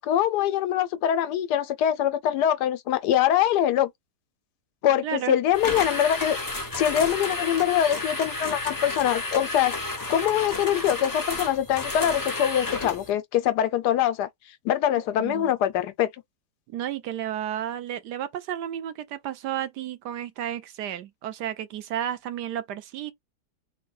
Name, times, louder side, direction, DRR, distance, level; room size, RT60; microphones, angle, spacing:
voice 1, 0.0-3.9 4.8-6.4 6.7-9.8 10.1-14.3 14.6-16.1, left 10 dB, 80° left, 1.2 m, -23 dB
voice 2, 5.0-5.4 15.2-15.5 16.7-23.1, right 10 dB, 90° right, 1.3 m, -32 dB
sound 1, 5.5-13.1, left 2 dB, 20° left, 0.6 m, -31 dB
3.7 x 2.2 x 3.9 m
omnidirectional pair, 1.8 m